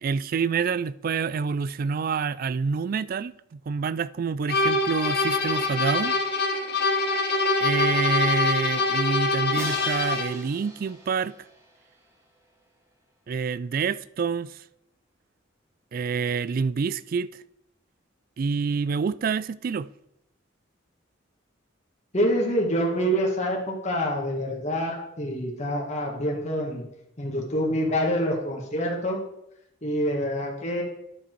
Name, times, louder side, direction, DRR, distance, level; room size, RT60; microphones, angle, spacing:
voice 1, 0.0-6.2 7.6-11.3 13.3-14.6 15.9-17.3 18.4-19.9, right 5 dB, 45° right, 0.3 m, -27 dB
sound 1, 4.5-10.4, left 3 dB, 50° left, 1.2 m, -24 dB
Crash cymbal, 9.5-12.5, right 1 dB, 15° right, 1.4 m, -41 dB
voice 2, 22.1-26.8 27.2-29.2 29.8-30.8, equal, 35° left, 1.7 m, -26 dB
10.5 x 6.9 x 4.6 m
head